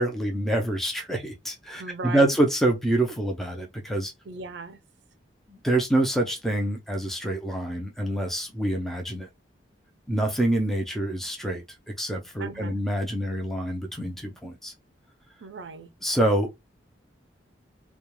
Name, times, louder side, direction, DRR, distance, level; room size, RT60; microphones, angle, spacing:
voice 1, 0.0-4.1 5.5-9.3 10.1-14.7 16.0-16.6, right 1 dB, ahead, 0.5 m, -26 dB
voice 2, 1.8-2.4 4.3-4.8 12.4-12.8 15.4-15.9, right 4 dB, 70° right, 0.5 m, -37 dB
2.3 x 2.2 x 2.9 m
head